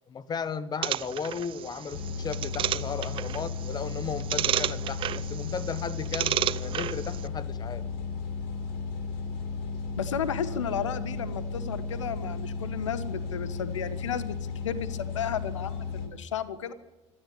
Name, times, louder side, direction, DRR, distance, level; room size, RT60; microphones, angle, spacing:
voice 1, 0.1-7.8, left 6 dB, 25° left, 16 dB, 1.2 m, -35 dB
sound 1, 0.8-7.3, right 12 dB, 35° right, 0.6 m, -32 dB
sound 2, 1.9-16.1, left 5 dB, 55° left, 3.6 m, -35 dB
voice 2, 10.0-14.4 14.6-16.7, left 8 dB, 75° left, 15 dB, 1.3 m, -33 dB
25.5 x 13.0 x 8.7 m, 1.1 s
figure-of-eight pair, 75°, 16 cm